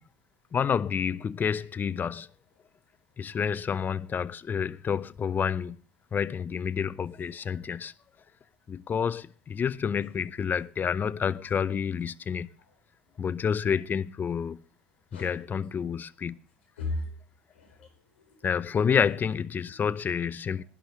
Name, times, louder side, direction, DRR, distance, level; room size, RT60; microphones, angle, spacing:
voice 1, 0.5-2.3 3.2-5.8 6.1-7.9 8.7-12.5 13.2-14.6 15.1-16.4 18.4-20.6, left 7 dB, 30° left, 0.6 m, -29 dB
voice 2, 15.1-15.5 15.9-16.0 16.8-17.1 17.5-18.5 19.7-19.8 20.5-20.7, left 2 dB, 85° left, 4.9 m, -39 dB
19.0 x 11.0 x 3.1 m
hypercardioid pair, 75°, 6 cm